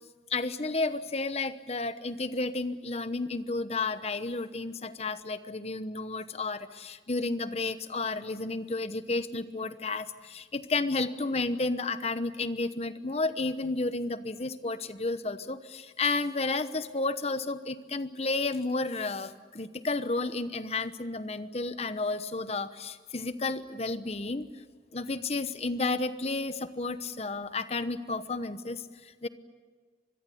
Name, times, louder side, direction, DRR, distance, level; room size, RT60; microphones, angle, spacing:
voice 1, 0.3-24.5 24.9-29.3, left 3 dB, 35° left, 12 dB, 1.0 m, -32 dB
26.0 x 21.5 x 8.5 m, 1.4 s
head